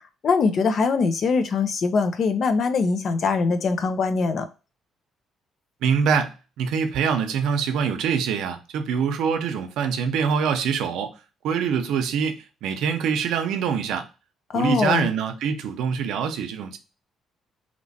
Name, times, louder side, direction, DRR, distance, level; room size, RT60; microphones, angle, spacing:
voice 1, 0.0-4.5 14.5-15.1, left 4 dB, 50° left, 0.6 m, -22 dB
voice 2, 5.8-11.1 11.4-14.1 14.5-16.8, right 6 dB, 80° right, 0.6 m, -24 dB
3.0 x 3.0 x 4.1 m
cardioid pair, 125°, 0 cm